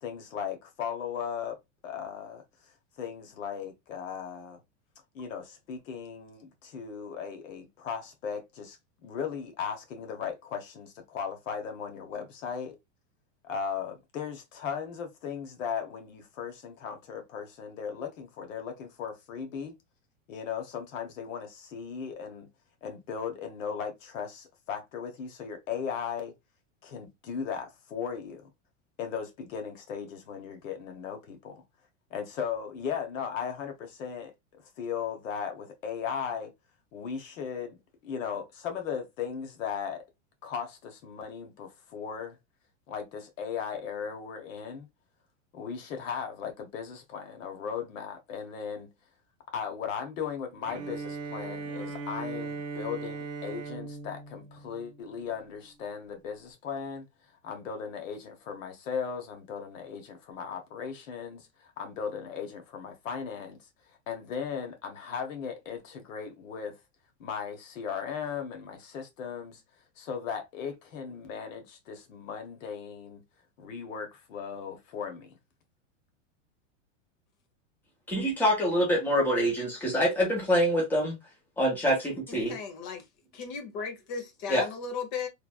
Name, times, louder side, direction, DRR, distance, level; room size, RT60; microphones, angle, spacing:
voice 1, 0.0-1.6 1.8-2.4 3.0-4.6 5.1-8.8 9.0-12.8 13.4-19.8 20.3-22.5 22.8-26.3 26.8-28.4 29.0-31.6 32.1-36.5 36.9-37.8 38.0-40.0 40.4-42.4 42.9-44.9 45.5-48.9 49.5-57.0 57.4-63.6 64.1-66.8 67.2-69.6 70.0-73.2 73.6-75.4, left 7 dB, 80° left, 1.2 m, -37 dB
Bowed string instrument, 50.6-55.6, right 3 dB, 30° right, 0.7 m, -39 dB
voice 2, 78.1-81.2 81.6-82.6 84.5-84.7, equal, 5° left, 1.0 m, -25 dB
voice 3, 82.3-83.0 83.3-85.3, left 5 dB, 40° left, 1.0 m, -36 dB
3.2 x 2.5 x 2.3 m
supercardioid pair, 165°, 38 cm